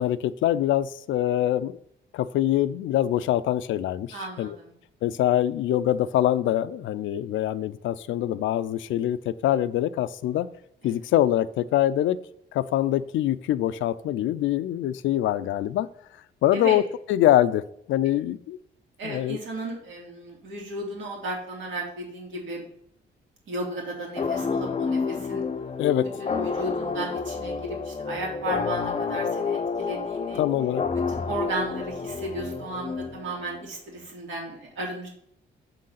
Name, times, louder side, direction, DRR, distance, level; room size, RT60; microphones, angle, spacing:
voice 1, 0.0-1.8 2.1-4.6 5.0-10.5 10.8-12.2 12.5-15.9 16.4-16.8 17.1-18.6 19.0-19.4 25.8-26.1 30.4-30.8, left 12 dB, 75° left, 14 dB, 0.5 m, -24 dB
voice 2, 4.1-4.7 10.8-10.9 16.5-16.8 19.0-22.7 23.5-25.4 26.2-30.4 30.9-35.1, right 1 dB, 75° right, -1 dB, 2.5 m, -34 dB
sound 1, 24.2-33.6, left 5 dB, 30° left, 0.6 m, -29 dB
7.4 x 3.9 x 5.6 m, 0.71 s
cardioid pair, 90°, 20 cm